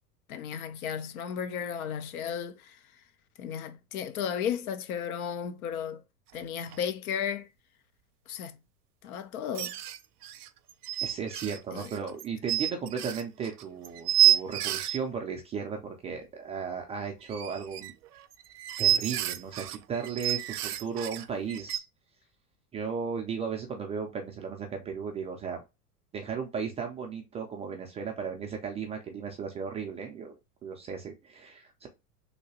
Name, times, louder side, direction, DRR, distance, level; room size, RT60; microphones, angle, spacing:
voice 1, 0.3-2.8 3.4-6.0 6.3-7.5 8.3-8.6 9.0-9.8 11.7-11.9, left 8 dB, 65° left, 0.7 m, -34 dB
sound 1, 6.4-6.5 6.7-6.8 9.5-15.0 17.2-21.8, right 13 dB, 75° right, 0.5 m, -29 dB
voice 2, 11.0-17.9 18.8-21.8 22.7-25.6 26.1-30.3 30.6-31.9, right 6 dB, 15° right, 0.3 m, -35 dB
3.2 x 2.9 x 2.7 m
hypercardioid pair, 90°, 46 cm